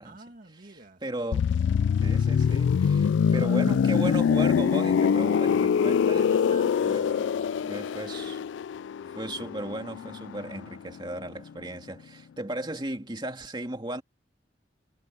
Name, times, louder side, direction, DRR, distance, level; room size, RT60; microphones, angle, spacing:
voice 1, 0.0-1.2 4.9-8.3, right 2 dB, 50° right, 2.0 m, -49 dB
voice 2, 0.7-1.4 2.0-6.3 6.8-7.1 7.7-8.4 9.1-14.0, right 1 dB, 25° right, 2.4 m, -36 dB
sound 1, 1.3-11.0 11.2-11.5, left 7 dB, 90° left, 0.3 m, -24 dB
head